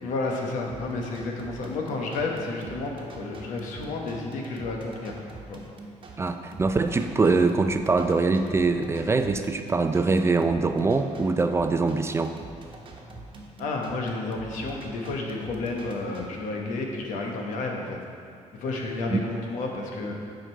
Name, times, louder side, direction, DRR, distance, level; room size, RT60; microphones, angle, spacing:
voice 1, 0.0-5.1 5.5-5.6 13.6-18.0 18.5-20.2, left 3 dB, 90° left, 0 dB, 1.2 m, -31 dB
sound 1, 0.7-16.3, right 2 dB, 40° right, 1.0 m, -44 dB
voice 2, 6.2-12.3 19.1-19.2, right 3 dB, 20° right, 8 dB, 0.4 m, -23 dB
9.0 x 5.2 x 4.6 m, 2.4 s
cardioid pair, 120°, 13 cm